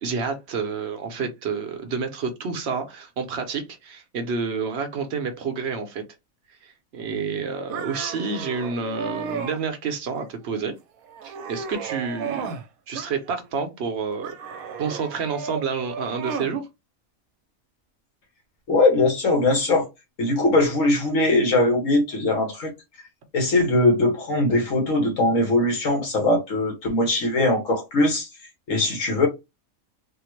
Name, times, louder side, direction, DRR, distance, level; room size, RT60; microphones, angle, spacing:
voice 1, 0.0-6.0 6.6-10.7 11.2-12.5 12.9-14.3 14.8-16.7, right 5 dB, 55° right, 0.9 m, -29 dB
sound 1, 7.7-9.6 10.1-10.7 11.1-12.7 12.9-13.6 14.2-16.6, right 6 dB, 85° right, 1.1 m, -34 dB
voice 2, 18.7-19.9 20.2-22.7 23.3-28.3 28.7-29.3, left 2 dB, 65° left, 1.5 m, -21 dB
3.6 x 2.1 x 3.0 m
omnidirectional pair, 1.5 m